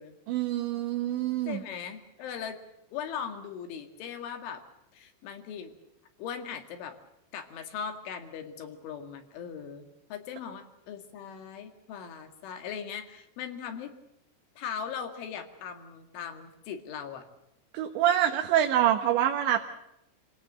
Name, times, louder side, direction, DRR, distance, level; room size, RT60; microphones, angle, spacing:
voice 1, 0.3-1.6 17.7-19.7, right 11 dB, 75° right, 4 dB, 3.4 m, -26 dB
voice 2, 1.5-2.6 2.9-4.6 4.9-5.7 6.2-7.0 7.3-13.9 14.6-17.3, left 7 dB, 85° left, 5 dB, 4.6 m, -39 dB
26.5 x 18.0 x 7.5 m, 0.86 s
omnidirectional pair, 5.4 m